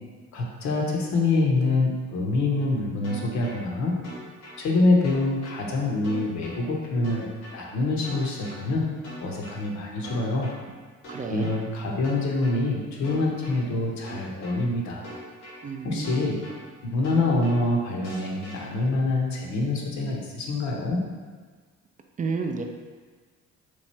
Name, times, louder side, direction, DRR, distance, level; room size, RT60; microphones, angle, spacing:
voice 1, 0.3-3.9 4.6-8.9 9.2-10.5 11.3-15.1 15.8-16.4 16.8-21.0, left 2 dB, 60° left, -1 dB, 0.8 m, -25 dB
sound 1, 3.0-3.6 4.0-4.6 5.0-5.6 6.0-6.6 7.0-7.6 8.0-8.6 9.0-9.6 10.0-10.6 11.0-11.6 12.0-12.6 13.0-13.6 14.0-14.6 15.0-15.6 16.0-16.6 17.0-17.6 18.0-18.6, right 1 dB, 80° left, 1.1 m, -41 dB
voice 2, 11.1-11.6 15.6-16.3 22.2-22.6, right 4 dB, 25° right, 3 dB, 0.4 m, -31 dB
3.0 x 2.3 x 4.2 m, 1.5 s
hypercardioid pair, 55°, 32 cm